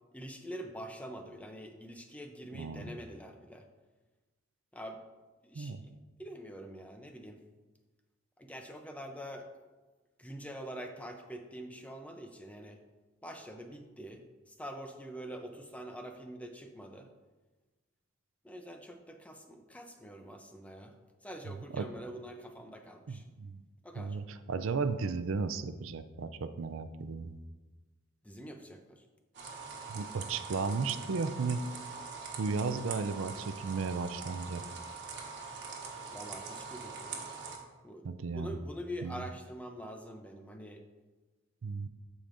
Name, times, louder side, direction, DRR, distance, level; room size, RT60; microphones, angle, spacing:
voice 1, 0.1-3.6 4.7-5.0 5.4-5.9 6.2-7.4 8.4-9.5 10.2-12.8 13.2-14.2 14.5-17.1 18.4-20.9 21.2-23.2 23.8-24.2 28.2-29.0 36.1-37.2 37.8-40.8, equal, 5° left, 4 dB, 0.6 m, -45 dB
voice 2, 2.5-2.8 5.6-5.8 21.7-21.9 23.1-23.6 24.0-27.3 29.9-31.7 32.4-34.6 38.0-38.5 39.0-39.2 41.6-41.9, right 4 dB, 75° right, 11 dB, 0.5 m, -34 dB
sound 1, 29.3-37.6, right 5 dB, 60° right, 1.3 m, -43 dB
15.0 x 5.1 x 2.6 m, 1.2 s
head